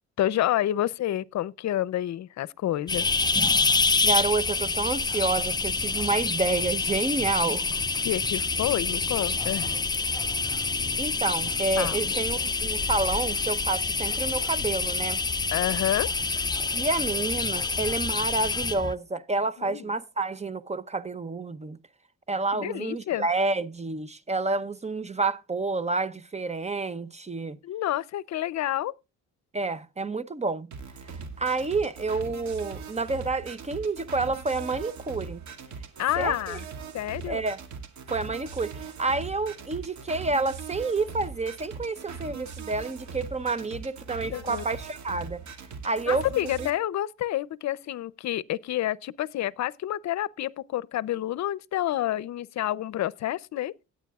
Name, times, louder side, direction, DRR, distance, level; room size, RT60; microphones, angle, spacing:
voice 1, 0.2-3.1 8.0-9.8 11.8-12.0 15.5-16.1 19.6-19.8 22.5-23.3 27.6-28.9 36.0-36.6 36.9-37.4 44.3-44.6 46.1-53.7, left 13 dB, 65° left, 0.7 m, -29 dB
sound 1, 2.9-18.9, left 4 dB, 15° left, 0.5 m, -27 dB
voice 2, 4.0-7.7 10.6-10.7 11.0-15.2 16.7-21.8 22.3-27.6 29.5-30.7 31.0-35.4 36.2-36.6 37.3-37.6 38.1-45.4 45.8-46.3 46.6-46.7, right 3 dB, 20° right, 0.8 m, -29 dB
sound 2, 8.7-13.7, equal, 5° right, 5.8 m, -52 dB
sound 3, 30.7-46.7, right 5 dB, 65° right, 2.3 m, -40 dB
17.0 x 9.6 x 2.4 m
cardioid pair, 90°, 30 cm